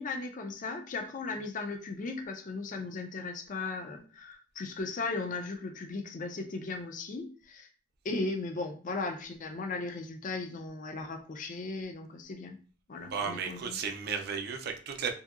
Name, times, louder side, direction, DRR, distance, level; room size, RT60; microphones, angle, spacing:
voice 1, 0.0-7.7 8.0-12.6 12.9-13.8, left 3 dB, 40° left, 5 dB, 0.4 m, -37 dB
voice 2, 13.1-15.1, right 6 dB, 55° right, 5 dB, 0.4 m, -34 dB
2.7 x 2.7 x 2.4 m, 0.39 s
head